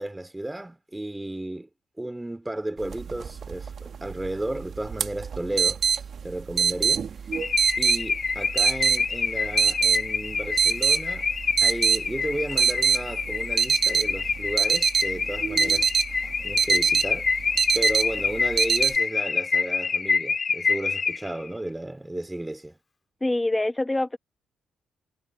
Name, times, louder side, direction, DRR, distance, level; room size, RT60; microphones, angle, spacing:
voice 1, 0.0-1.7 2.0-7.0 7.8-11.3 11.6-15.9 16.4-17.3 17.7-22.8, right 1 dB, 10° right, 2.8 m, -33 dB
sound 1, 2.8-19.0, right 7 dB, 55° right, 1.7 m, -25 dB
Car / Alarm, 7.3-21.5, left 5 dB, 40° left, 2.6 m, -27 dB
voice 2, 23.2-24.2, left 2 dB, 15° left, 1.3 m, -25 dB
cardioid pair, 90°, 0 cm